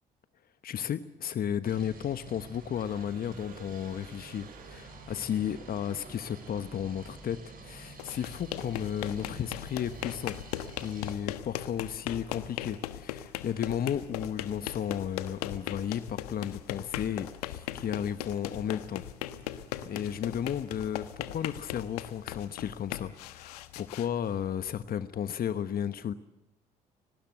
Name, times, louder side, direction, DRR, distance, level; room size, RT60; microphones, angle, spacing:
voice 1, 0.6-10.4 10.8-19.0 19.8-26.1, left 9 dB, 50° left, 12 dB, 1.2 m, -34 dB
sound 1, 1.6-11.1, right 3 dB, 50° right, 6.5 m, -49 dB
Crowd / Alarm, 2.2-7.7, right 10 dB, 90° right, 1.9 m, -57 dB
sound 2, 7.9-24.9, left 13 dB, 85° left, 1.2 m, -39 dB
27.5 x 19.0 x 8.0 m, 0.88 s
hypercardioid pair, 50°, 19 cm